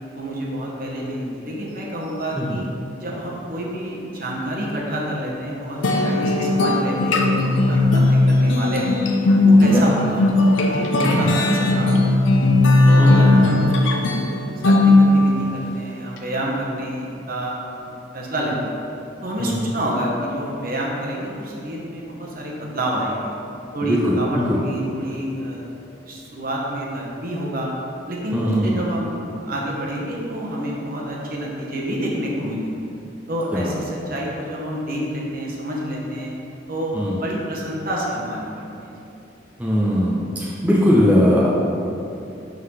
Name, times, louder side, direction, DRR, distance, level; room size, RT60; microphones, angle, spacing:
voice 1, 0.1-2.7 3.0-9.0 9.4-12.3 12.9-14.2 14.6-17.6 18.1-18.7 19.2-23.3 23.7-25.6 26.0-27.7 28.1-32.8 33.3-36.3 36.7-38.9, right 1 dB, 50° right, -3 dB, 1.1 m, -28 dB
sound 1, 5.8-15.5, left 2 dB, 85° left, 0.6 m, -17 dB
voice 2, 13.0-13.5 19.4-19.5 23.8-24.6 28.3-28.8 33.5-33.8 36.9-37.2 39.6-41.5, equal, 10° right, -6 dB, 0.7 m, -20 dB
11.0 x 3.9 x 3.3 m, 2.8 s
head